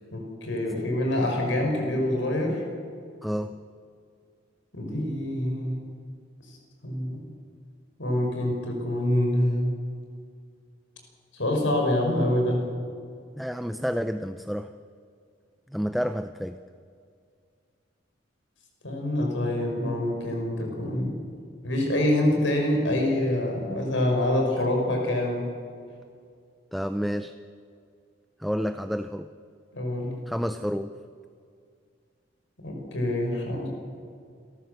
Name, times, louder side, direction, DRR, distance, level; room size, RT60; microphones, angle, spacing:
voice 1, 0.1-2.6 4.7-5.9 6.8-7.2 8.0-9.8 11.3-12.7 18.8-21.1 21.6-25.5 29.7-30.2 32.6-33.7, left 1 dB, 90° left, 1 dB, 5.4 m, -26 dB
voice 2, 3.2-3.5 13.3-14.7 15.7-16.6 26.7-27.3 28.4-29.3 30.3-31.0, equal, ahead, 9 dB, 0.4 m, -29 dB
29.0 x 13.5 x 6.8 m, 2.3 s
head